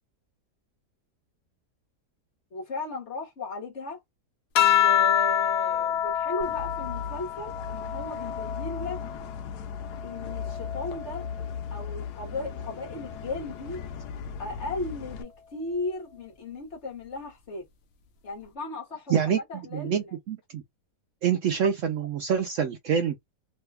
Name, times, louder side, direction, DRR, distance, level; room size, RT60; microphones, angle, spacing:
voice 1, 2.5-4.0 4.7-9.0 10.0-11.3 11.7-13.8 14.4-17.6 18.2-20.2, left 2 dB, 50° left, 1.2 m, -36 dB
sound 1, 4.5-9.3 9.8-11.5 12.7-13.2, left 11 dB, 65° left, 0.6 m, -27 dB
sound 2, 6.4-15.2, left 7 dB, 85° left, 1.2 m, -37 dB
voice 2, 19.7-20.6 21.2-23.2, right 8 dB, 70° right, 0.8 m, -26 dB
3.1 x 2.2 x 3.2 m
omnidirectional pair, 1.7 m